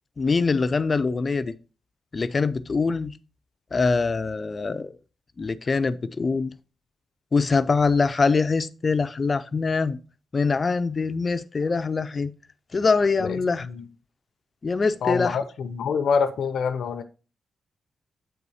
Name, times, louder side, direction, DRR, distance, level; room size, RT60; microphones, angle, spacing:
voice 1, 0.2-1.6 2.1-3.1 3.7-4.9 5.4-6.5 7.3-10.0 10.3-12.3 12.7-13.7 14.6-15.4, left 4 dB, 35° left, 0.5 m, -23 dB
voice 2, 15.0-17.0, left 6 dB, 75° left, 0.6 m, -26 dB
8.0 x 4.1 x 4.8 m
cardioid pair, 100°, 0 cm